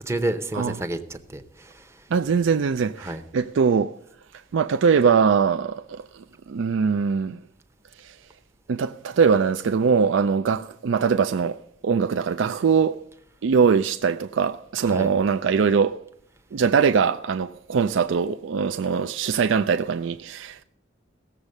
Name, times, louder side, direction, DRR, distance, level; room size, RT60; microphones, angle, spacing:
voice 1, 0.1-2.0 3.0-3.2 14.8-15.1, right 1 dB, 15° right, 0.7 m, -30 dB
voice 2, 2.1-3.9 4.5-7.4 8.0-8.2 8.7-13.0 13.4-16.0 16.5-20.6, right 6 dB, 75° right, 0.4 m, -22 dB
16.5 x 7.2 x 6.5 m
head